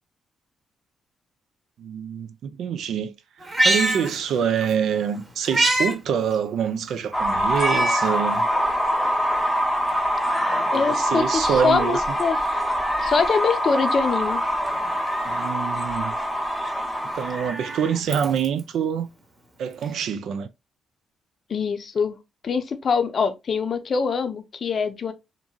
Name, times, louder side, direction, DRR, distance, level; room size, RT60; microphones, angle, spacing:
voice 1, 1.8-3.1 3.6-8.5 10.7-12.0 15.2-16.2 17.1-19.1 19.6-20.5, right 8 dB, 80° right, 0.4 m, -26 dB
Meow, 3.4-4.7 5.1-6.0 6.3-6.4 7.5-8.2 8.7-8.8 9.8-10.8 12.3-13.3 14.6-15.5 16.9-18.6 19.8-19.9, right 1 dB, 30° right, 0.9 m, -27 dB
sound 1, 7.1-17.5, equal, ahead, 0.7 m, -24 dB
voice 2, 10.7-12.6 13.0-14.4 21.5-22.2 22.4-25.1, left 5 dB, 50° left, 0.5 m, -24 dB
2.8 x 2.5 x 2.3 m
cardioid pair, 95°, 0 cm